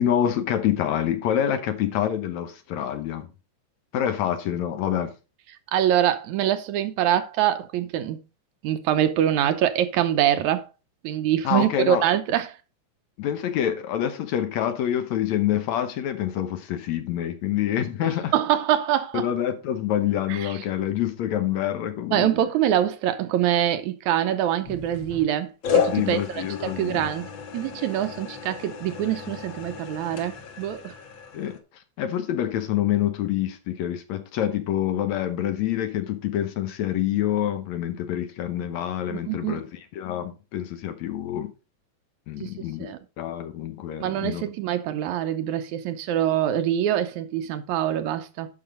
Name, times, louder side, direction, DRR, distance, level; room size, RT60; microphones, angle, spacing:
voice 1, 0.0-3.3 3.9-5.1 11.4-12.0 13.2-18.3 19.1-22.3 25.9-27.0 31.3-31.6 32.0-39.7 39.9-41.5 42.3-42.9 43.2-44.4, left 11 dB, 70° left, 2.1 m, -26 dB
voice 2, 5.7-8.2 8.6-10.7 11.0-12.6 18.0-19.3 20.3-20.6 22.1-31.0 39.1-39.6 42.4-42.5 42.8-43.0 44.0-48.5, right 11 dB, 80° right, 2.2 m, -24 dB
sound 1, 24.6-25.3 25.6-31.6, left 6 dB, 55° left, 1.5 m, -31 dB
11.0 x 5.8 x 3.9 m
omnidirectional pair, 3.5 m